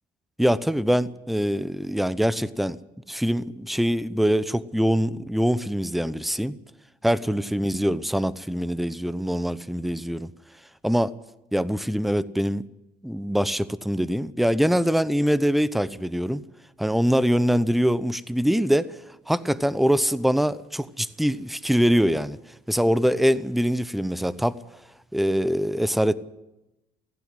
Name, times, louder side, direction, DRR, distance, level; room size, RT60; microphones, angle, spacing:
voice 1, 0.4-2.8 3.1-6.6 7.0-10.3 10.8-11.1 11.5-12.6 13.0-16.4 16.8-18.9 19.3-22.4 22.7-24.6 25.1-26.1, equal, ahead, 0.8 m, -23 dB
17.0 x 15.5 x 9.9 m
cardioid pair, 110°, 17 cm